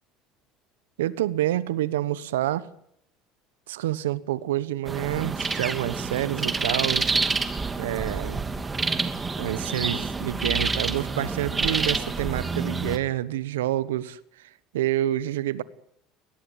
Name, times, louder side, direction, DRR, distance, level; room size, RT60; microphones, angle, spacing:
voice 1, 1.0-2.7 3.7-7.1 7.8-8.4 9.4-14.2 14.7-15.6, right 13 dB, 80° right, 1.1 m, -28 dB
sound 1, 4.9-13.0, right 4 dB, 25° right, 2.7 m, -28 dB
22.0 x 19.0 x 9.4 m
hypercardioid pair, 75°, 0 cm